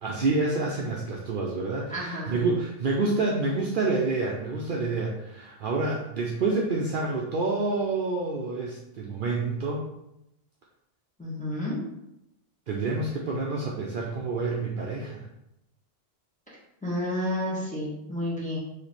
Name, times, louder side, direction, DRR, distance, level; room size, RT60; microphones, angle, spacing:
voice 1, 0.0-9.8 12.7-15.2, right 3 dB, 60° right, -2 dB, 0.7 m, -28 dB
voice 2, 1.9-2.4 11.2-11.8 16.8-18.6, left 1 dB, 10° left, -7 dB, 1.1 m, -30 dB
3.2 x 2.8 x 4.1 m, 0.85 s
omnidirectional pair, 1.1 m